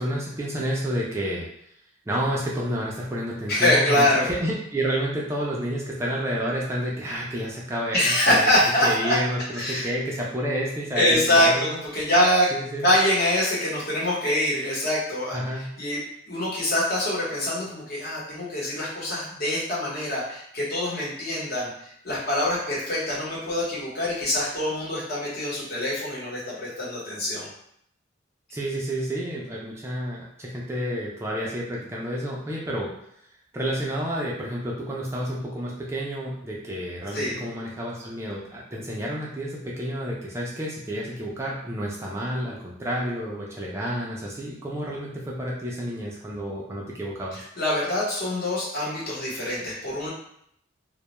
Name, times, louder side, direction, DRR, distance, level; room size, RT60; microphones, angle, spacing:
voice 1, 0.0-1.5 2.1-8.5 8.8-11.8 12.5-12.9 15.3-15.7 28.5-32.9 33.5-47.4, equal, 15° right, -4 dB, 0.3 m, -30 dB
voice 2, 3.5-4.3 7.9-9.2 9.5-9.9 10.9-12.5 12.8-16.0 16.3-27.5 37.1-37.3 47.3-50.1, left 1 dB, 55° left, -6 dB, 0.9 m, -24 dB
2.2 x 2.0 x 2.9 m, 0.71 s
head